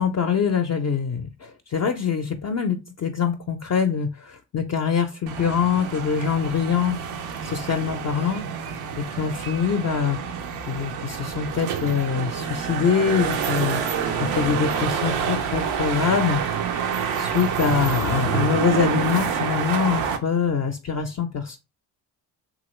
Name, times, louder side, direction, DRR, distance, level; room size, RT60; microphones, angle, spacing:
voice 1, 0.0-7.0 7.4-8.4 9.0-10.2 10.7-13.8 14.2-16.4 17.2-21.6, left 7 dB, 35° left, 4 dB, 0.5 m, -24 dB
sound 1, 5.3-20.2, right 7 dB, 80° right, 0.6 m, -27 dB
3.0 x 2.4 x 3.0 m, 0.27 s
hypercardioid pair, 45°, 47 cm